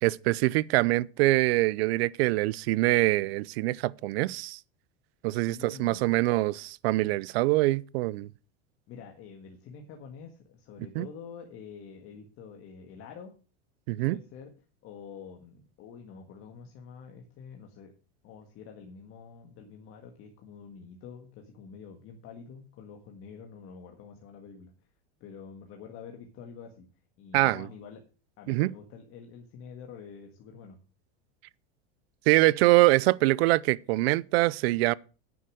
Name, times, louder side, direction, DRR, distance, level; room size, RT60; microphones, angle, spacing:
voice 1, 0.0-4.6 5.2-8.3 10.9-11.1 13.9-14.2 27.3-27.7 28.5-28.7 32.3-34.9, right 20 dB, 75° right, 0.6 m, -24 dB
voice 2, 5.4-6.2 8.9-13.3 14.0-14.5 14.8-17.9 18.2-24.7 25.2-26.9 27.2-28.0 28.4-30.8, left 6 dB, 45° left, 1.8 m, -47 dB
10.0 x 7.0 x 6.3 m
supercardioid pair, 140°, 31 cm